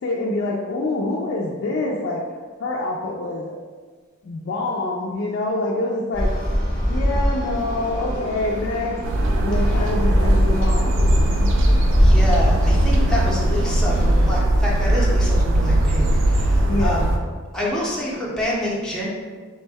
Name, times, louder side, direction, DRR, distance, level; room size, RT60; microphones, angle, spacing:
voice 1, 0.0-2.2 2.6-3.5 4.2-6.3 6.9-8.9 9.4-11.5 16.7-17.0, left 2 dB, 55° left, -3 dB, 0.3 m, -26 dB
sound 1, 6.1-14.4, equal, 90° right, 1.3 m, -22 dB
sound 2, 9.0-17.2, right 1 dB, 65° right, 0.4 m, -19 dB
voice 2, 12.0-17.1 17.5-19.1, equal, 5° left, -6 dB, 0.6 m, -27 dB
3.5 x 2.1 x 3.4 m, 1.5 s
head